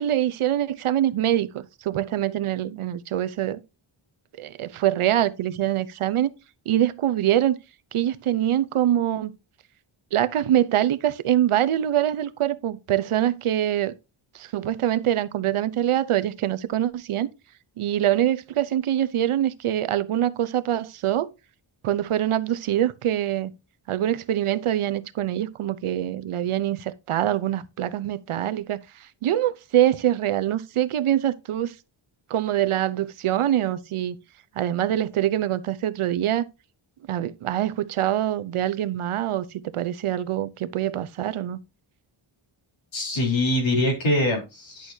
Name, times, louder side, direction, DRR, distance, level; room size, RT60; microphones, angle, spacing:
voice 1, 0.0-3.6 4.4-6.3 6.7-7.6 7.9-9.3 10.1-13.9 14.3-17.3 17.8-21.3 21.8-23.5 23.9-28.8 29.2-31.7 32.3-34.2 34.6-36.5 37.1-41.6, right 12 dB, 85° right, 0.8 m, -24 dB
voice 2, 42.9-44.9, left 1 dB, 65° left, 3.8 m, -23 dB
11.0 x 6.3 x 2.7 m
wide cardioid pair, 175°, 50 cm